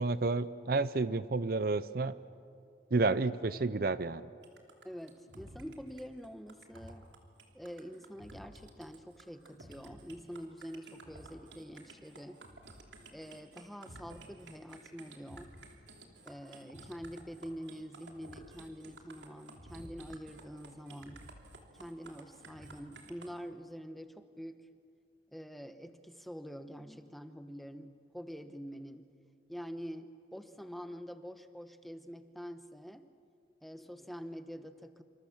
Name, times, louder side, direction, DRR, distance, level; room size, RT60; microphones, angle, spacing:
voice 1, 0.0-2.1 2.9-4.2, right 3 dB, 55° right, 15 dB, 0.6 m, -30 dB
sound 1, 4.4-23.3, right 2 dB, 85° right, 3.2 m, -53 dB
voice 2, 4.8-7.0 7.5-12.4 13.1-15.5 16.2-21.3 21.7-24.6 25.3-29.1 29.5-33.1 33.6-35.0, equal, ahead, 9 dB, 1.1 m, -46 dB
28.0 x 26.5 x 7.3 m, 2.3 s
head